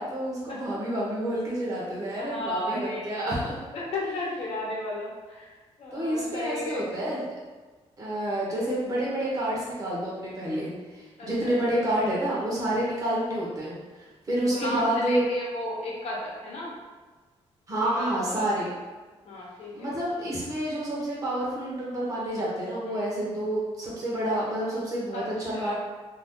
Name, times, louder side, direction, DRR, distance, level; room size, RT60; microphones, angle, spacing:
voice 1, 0.0-3.6 5.9-7.2 8.0-13.8 14.3-15.2 17.7-18.7 19.7-25.7, right 1 dB, 30° right, -6 dB, 0.9 m, -29 dB
voice 2, 2.1-3.4 3.7-5.5 5.8-6.9 11.2-11.5 14.4-16.7 17.8-18.1 18.3-18.5 19.2-19.9 22.8-23.0 25.1-25.2 25.5-25.7, left 1 dB, 70° left, -4 dB, 0.9 m, -34 dB
2.7 x 2.4 x 3.6 m, 1.3 s
wide cardioid pair, 175°, 11 cm